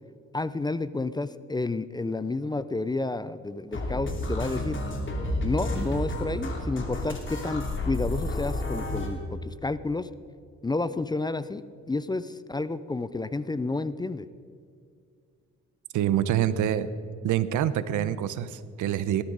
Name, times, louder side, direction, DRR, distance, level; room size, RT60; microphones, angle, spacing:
voice 1, 0.3-4.8 5.4-10.1 10.6-14.3, left 2 dB, 15° left, 14 dB, 0.5 m, -30 dB
sound 1, 3.7-9.1, left 1 dB, 40° left, 3.0 m, -31 dB
voice 2, 15.9-16.9 17.2-19.2, right 11 dB, 80° right, 14 dB, 0.8 m, -26 dB
18.5 x 12.5 x 4.0 m, 2.3 s
cardioid pair, 90°, 30 cm